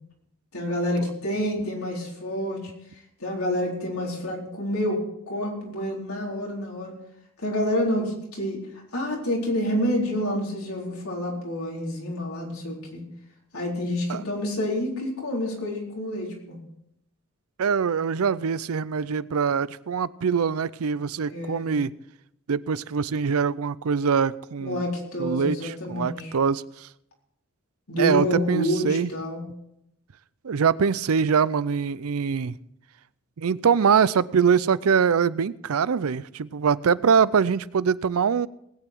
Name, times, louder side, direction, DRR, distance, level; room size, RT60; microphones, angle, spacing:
voice 1, 0.5-2.7 3.2-5.0 5.3-6.9 7.4-8.6 8.9-13.0 13.5-16.6 21.3-21.7 24.6-26.3 27.9-29.4, equal, 80° left, -2 dB, 4.3 m, -28 dB
voice 2, 17.6-21.9 22.5-24.8 25.2-26.9 27.9-29.1 30.4-32.5 33.4-38.5, right 6 dB, 80° right, 18 dB, 0.5 m, -23 dB
19.5 x 9.0 x 4.6 m, 0.78 s
head